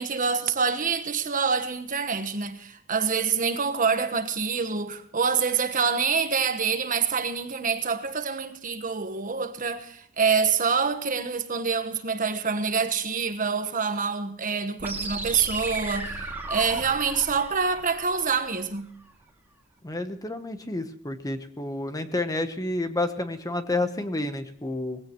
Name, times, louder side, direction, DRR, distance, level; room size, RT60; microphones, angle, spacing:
voice 1, 0.0-18.9, right 5 dB, 40° right, 1.3 m, -26 dB
sound 1, 14.8-18.8, right 2 dB, 10° right, 2.5 m, -35 dB
voice 2, 19.8-25.0, left 2 dB, 20° left, 1.0 m, -30 dB
20.0 x 16.5 x 3.1 m
head